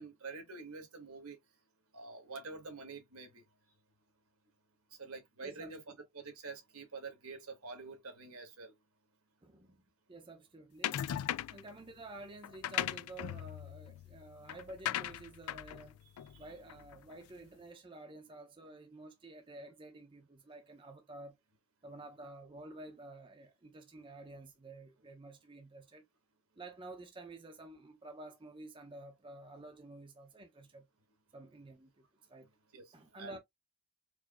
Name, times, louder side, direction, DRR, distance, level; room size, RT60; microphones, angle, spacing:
voice 1, 0.0-1.4 1.9-3.4 5.0-5.8 6.1-8.7 16.3-16.4 32.7-32.8 33.2-33.4, right 3 dB, 75° right, 1.4 m, -47 dB
voice 2, 5.4-6.0 9.4-9.8 10.1-11.0 11.5-16.0 16.4-21.4 21.8-26.0 26.6-30.9 31.3-32.5 32.9-33.4, right 2 dB, 25° right, 0.6 m, -51 dB
sound 1, 10.8-11.7 12.4-17.1, left 11 dB, 85° left, 0.3 m, -39 dB
4.7 x 2.6 x 2.4 m
head